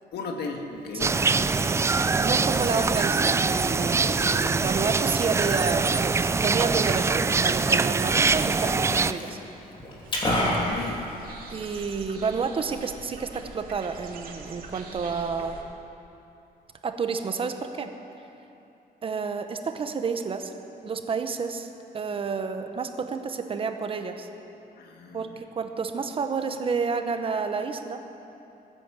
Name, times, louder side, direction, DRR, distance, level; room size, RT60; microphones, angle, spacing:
voice 1, 0.1-1.1 10.5-11.0 24.8-25.4, left 4 dB, 75° left, 3 dB, 1.8 m, -35 dB
Liquid, 0.7-11.7, left 1 dB, 30° left, 2.8 m, -35 dB
sound 1, 1.0-9.1, right 4 dB, 15° right, 0.3 m, -23 dB
voice 2, 2.1-9.4 11.5-15.6 16.8-17.9 19.0-20.5 20.8-21.7 21.9-24.3 25.1-28.0, right 5 dB, 35° right, 7 dB, 0.9 m, -30 dB
sound 2, 10.0-15.6, right 4 dB, 60° right, 2.1 m, -43 dB
18.0 x 10.5 x 7.5 m, 2.8 s
cardioid pair, 155°, 17 cm